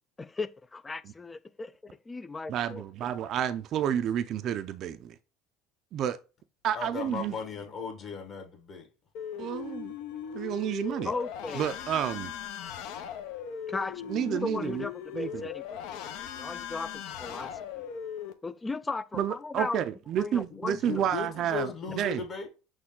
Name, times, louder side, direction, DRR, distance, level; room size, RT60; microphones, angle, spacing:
voice 1, 0.2-2.8 11.0-11.7 13.7-17.9 18.4-19.8 20.2-21.0, left 3 dB, 15° left, 0.3 m, -37 dB
voice 2, 2.5-5.1 5.9-6.2 6.6-7.4 9.4-9.9 10.3-11.1 11.5-12.3 14.1-14.9 15.1-15.4 19.1-22.2, right 9 dB, 50° right, 0.4 m, -30 dB
voice 3, 6.7-8.9 20.8-22.5, left 5 dB, 40° left, 1.4 m, -37 dB
sound 1, 9.1-18.3, left 8 dB, 70° left, 0.7 m, -39 dB
6.1 x 2.3 x 3.7 m
supercardioid pair, 100°, 0 cm